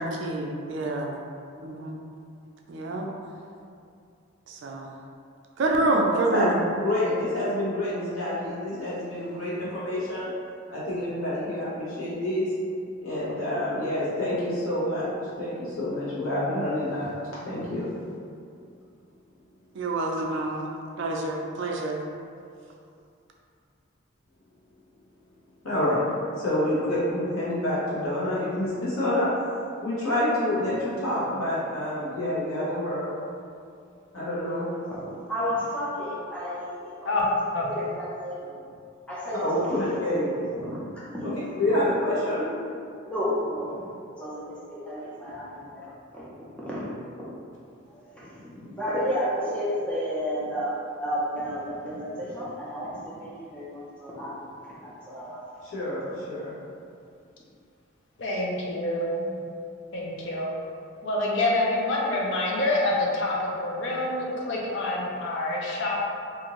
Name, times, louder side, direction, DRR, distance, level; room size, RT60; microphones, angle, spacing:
voice 1, 0.0-1.1 1.6-2.0 2.7-3.1 4.5-4.9 5.6-6.6 19.7-20.7 21.0-22.0, right 2 dB, 60° right, 0 dB, 0.3 m, -27 dB
voice 2, 6.3-10.3 10.7-12.5 13.0-17.1 17.4-17.9 25.6-26.0 26.4-29.3 29.8-33.0 34.1-34.7 39.4-40.3 41.2-41.3 41.6-42.5 55.6-56.5, left 1 dB, 90° left, -9 dB, 1.1 m, -27 dB
voice 3, 35.3-37.3 37.6-38.5 39.1-40.3 40.6-41.4 43.0-43.8 44.2-46.2 46.6-46.9 47.9-54.4 54.8-55.5, equal, 5° left, -8 dB, 0.4 m, -32 dB
voice 4, 37.5-37.9 58.2-59.4 59.9-60.5 61.0-66.0, left 2 dB, 60° left, -4 dB, 0.5 m, -27 dB
2.6 x 2.5 x 2.9 m, 2.4 s
head